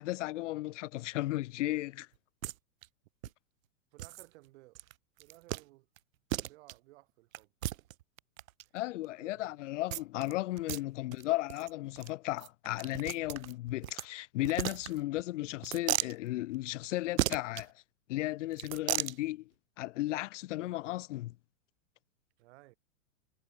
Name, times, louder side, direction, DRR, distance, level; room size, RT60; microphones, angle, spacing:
voice 1, 0.0-2.1 8.7-17.7 18.1-19.5 19.8-21.4, left 17 dB, 65° left, 0.6 m, -35 dB
sound 1, 2.4-2.5 2.8-2.9 3.2-3.3 4.0-4.3 4.7-4.9 5.2-5.6 6.0-6.1 6.3-6.7 7.3-8.6 9.9-10.3 10.6-10.8 11.1-11.2 11.5-11.7 12.0-12.1 12.4-14.1 14.4-15.2 15.6-16.1 17.2-17.6 18.5-19.2, right 14 dB, 75° right, 0.8 m, -35 dB
voice 2, 3.9-4.8 5.2-5.9 6.3-7.5 8.6-8.8 9.2-9.6 22.4-22.7, right 20 dB, 55° right, 7.5 m, -58 dB
hypercardioid pair, 135°, 40 cm